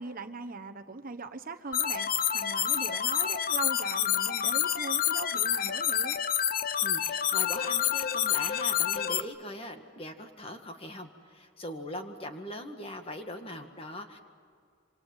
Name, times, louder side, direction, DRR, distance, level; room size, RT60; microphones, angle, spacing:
voice 1, 0.0-6.2, right 4 dB, 45° right, 8 dB, 1.1 m, -40 dB
sound 1, 1.7-9.2, left 10 dB, 45° left, 0.8 m, -28 dB
voice 2, 6.8-14.2, left 1 dB, 30° left, 5 dB, 1.9 m, -41 dB
27.0 x 26.0 x 7.4 m, 2.2 s
head